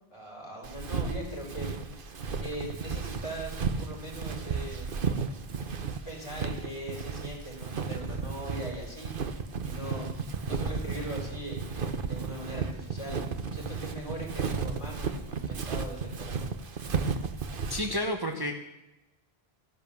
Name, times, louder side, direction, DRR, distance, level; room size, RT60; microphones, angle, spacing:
voice 1, 0.1-1.7 2.4-4.9 6.0-9.1 9.6-10.1 10.4-13.2 13.5-16.5, right 1 dB, 30° left, -2 dB, 4.9 m, -40 dB
Walk footsteps, 0.6-18.0, right 5 dB, 55° right, 1.1 m, -34 dB
voice 2, 17.7-18.5, left 1 dB, 25° right, 3 dB, 1.0 m, -30 dB
15.5 x 10.5 x 7.2 m, 0.97 s
omnidirectional pair, 1.1 m